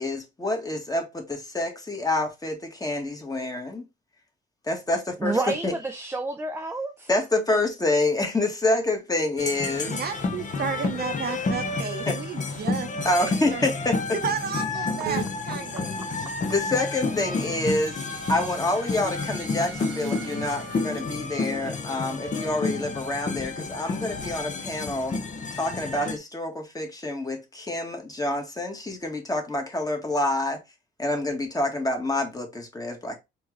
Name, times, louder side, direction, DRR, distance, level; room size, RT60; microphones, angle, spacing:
voice 1, 0.0-3.8 4.7-5.7 7.1-10.0 12.1-12.2 13.0-14.0 16.5-18.0 18.3-25.2 25.5-30.6 31.0-33.2, left 2 dB, 20° left, 1.4 m, -27 dB
voice 2, 5.2-7.1 15.7-15.8 16.3-16.4, right 2 dB, 10° right, 0.5 m, -29 dB
sound 1, 9.4-26.2, left 3 dB, 40° left, 0.8 m, -30 dB
voice 3, 9.9-12.9 13.5-13.6 14.2-15.9, right 6 dB, 50° right, 0.8 m, -32 dB
sound 2, 15.1-15.3 16.6-21.0, right 7 dB, 75° right, 1.2 m, -40 dB
4.4 x 3.0 x 3.0 m
cardioid pair, 90°, 20 cm